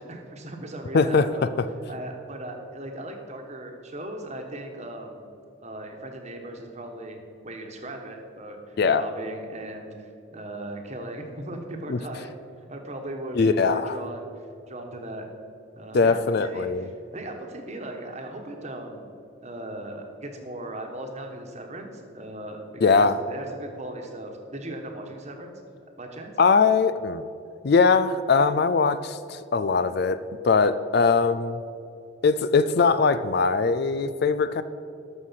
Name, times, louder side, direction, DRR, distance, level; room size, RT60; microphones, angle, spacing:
voice 1, 0.0-1.5 1.9-5.3 5.6-7.2 7.4-12.3 12.7-14.3 14.7-15.2 15.8-19.1 19.4-25.5 26.0-26.3, right 1 dB, 35° right, 3 dB, 1.3 m, -38 dB
voice 2, 0.9-1.3 8.8-9.0 11.9-12.0 13.4-14.0 15.9-16.9 22.8-23.2 26.4-27.3 27.6-30.2 30.4-31.6 32.2-34.6, left 4 dB, 50° left, 13 dB, 0.4 m, -21 dB
13.0 x 6.4 x 5.7 m, 2.6 s
head